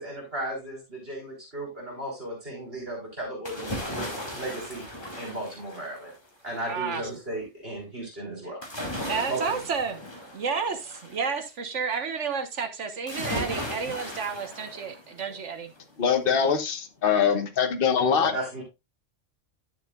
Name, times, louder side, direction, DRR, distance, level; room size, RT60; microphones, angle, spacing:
voice 1, 0.0-4.8 5.2-6.1 6.4-8.6 9.3-9.5 13.5-13.7 18.0-18.6, right 1 dB, 50° right, 4.2 m, -35 dB
sound 1, 3.4-6.3 8.6-11.2 13.1-15.3 15.8-15.9, equal, 20° left, 2.6 m, -36 dB
voice 2, 6.7-7.0 9.1-10.0 10.3-15.7, right 5 dB, 75° right, 1.6 m, -31 dB
voice 3, 16.0-18.3, left 6 dB, 50° left, 1.2 m, -23 dB
11.0 x 7.1 x 2.4 m
omnidirectional pair, 1.3 m